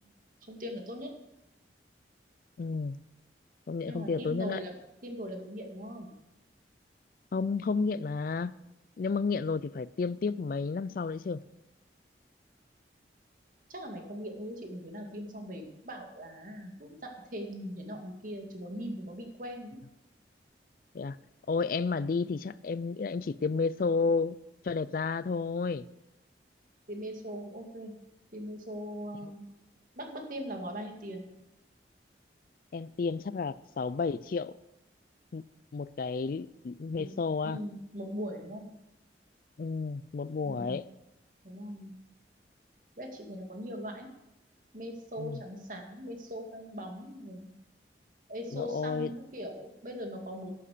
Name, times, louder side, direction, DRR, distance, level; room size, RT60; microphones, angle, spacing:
voice 1, 0.5-1.1 3.9-4.7 5.0-6.1 13.7-19.8 26.9-28.0 28.3-29.4 30.0-31.3 37.0-37.1 37.4-38.7 40.5-40.8 41.4-41.9 43.0-44.1 44.7-47.5 48.3-50.5, equal, 50° right, 3 dB, 2.3 m, -40 dB
voice 2, 2.6-3.0 3.7-4.6 7.3-8.5 9.0-11.4 20.9-21.2 21.5-24.4 24.6-25.9 29.2-29.3 32.7-34.5 35.3-35.4 35.7-37.6 39.6-40.8 45.2-45.4 48.5-49.1, left 4 dB, 50° left, 17 dB, 0.4 m, -31 dB
12.5 x 8.5 x 6.7 m, 0.90 s
head